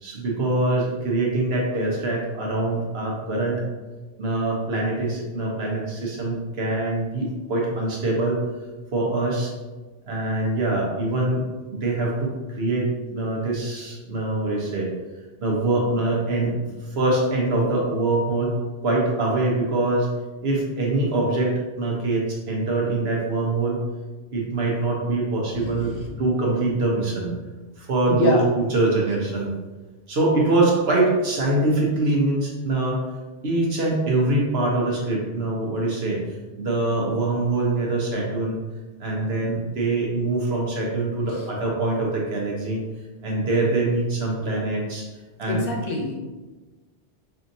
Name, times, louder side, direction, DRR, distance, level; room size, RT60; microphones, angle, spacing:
voice 1, 0.0-3.6 4.2-8.4 8.9-9.5 10.1-14.9 15.4-16.5 16.9-18.5 18.8-20.1 20.4-23.8 24.3-25.9 26.2-27.3 27.8-29.5 30.1-33.0 33.4-36.2 36.6-38.6 39.0-42.8 43.2-45.1 45.4-45.7, right 2 dB, 70° right, -2 dB, 1.2 m, -24 dB
voice 2, 25.5-26.1 28.1-28.4 45.5-46.2, left 2 dB, 60° left, -1 dB, 0.9 m, -25 dB
5.6 x 2.7 x 2.6 m, 1.2 s
omnidirectional pair, 1.1 m